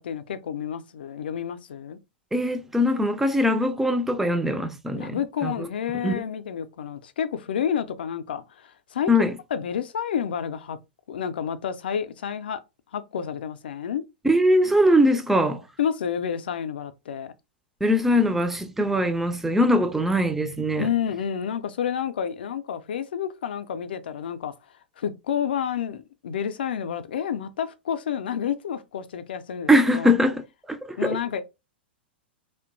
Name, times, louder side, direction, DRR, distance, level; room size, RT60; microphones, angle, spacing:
voice 1, 0.0-2.0 4.9-9.1 9.5-10.8 11.1-12.6 12.9-14.0 15.8-17.3 20.8-24.5 25.0-30.1 31.0-31.4, left 8 dB, 65° left, 0.4 m, -29 dB
voice 2, 2.3-5.7 6.0-6.2 9.1-9.4 14.2-15.6 17.8-20.9 29.7-31.2, equal, 5° right, 0.3 m, -22 dB
2.8 x 2.1 x 2.5 m
figure-of-eight pair, 100°, 6 cm